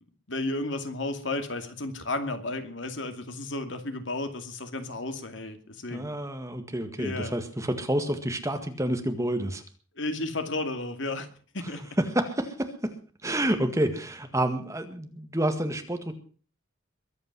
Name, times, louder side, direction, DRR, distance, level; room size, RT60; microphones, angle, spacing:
voice 1, 0.3-6.1 7.0-7.3 9.9-11.3 11.5-11.9, left 2 dB, 60° left, 8 dB, 2.5 m, -33 dB
voice 2, 5.9-9.6 12.1-12.9 13.2-16.1, right 1 dB, 15° right, 7 dB, 1.9 m, -29 dB
22.5 x 9.0 x 6.0 m, 0.41 s
head